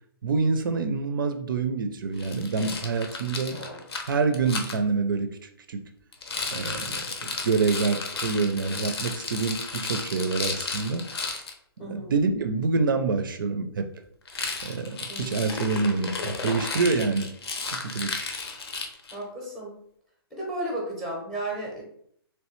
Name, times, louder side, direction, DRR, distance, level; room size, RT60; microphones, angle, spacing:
voice 1, 0.2-3.6 4.1-5.8 6.5-11.1 11.8-13.9 14.6-17.3 17.7-18.2, right 4 dB, 55° right, 8 dB, 0.4 m, -27 dB
Rattle, 2.2-4.8 6.1-11.5 14.3-19.2, left 4 dB, 80° left, 0.8 m, -34 dB
voice 2, 3.5-3.8 11.8-12.1 15.1-15.5 19.1-19.8 20.3-21.8, right 1 dB, ahead, -2 dB, 0.6 m, -34 dB
3.1 x 3.1 x 3.0 m, 0.67 s
hypercardioid pair, 170°, 13 cm